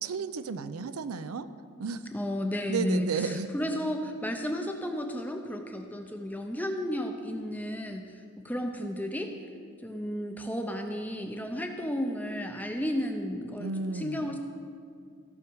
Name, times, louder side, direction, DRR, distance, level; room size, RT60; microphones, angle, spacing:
voice 1, 0.0-1.5 1.8-2.1 2.7-3.5 13.6-14.3, right 5 dB, 80° right, 12 dB, 0.5 m, -33 dB
voice 2, 2.1-9.3 9.8-14.4, equal, 10° left, 4 dB, 0.6 m, -33 dB
15.5 x 6.2 x 4.6 m, 2.3 s
head